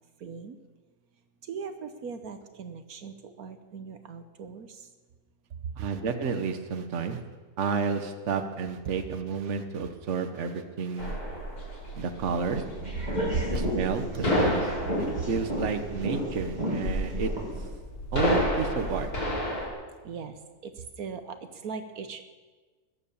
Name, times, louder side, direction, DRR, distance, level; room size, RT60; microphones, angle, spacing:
voice 1, 0.2-0.6 1.4-4.9 15.1-15.2 20.0-20.4 20.6-22.2, right 6 dB, 75° right, 8 dB, 1.4 m, -39 dB
voice 2, 5.8-7.2 7.6-11.2 11.9-12.6 13.5-14.7 15.0-17.3 18.1-19.1, right 5 dB, 55° right, 7 dB, 1.4 m, -31 dB
sound 1, 11.0-19.7, equal, 80° left, 4.5 m, -31 dB
sound 2, 12.4-17.7, equal, 30° right, 2.9 m, -33 dB
20.5 x 8.7 x 7.1 m, 1.4 s
omnidirectional pair, 1.6 m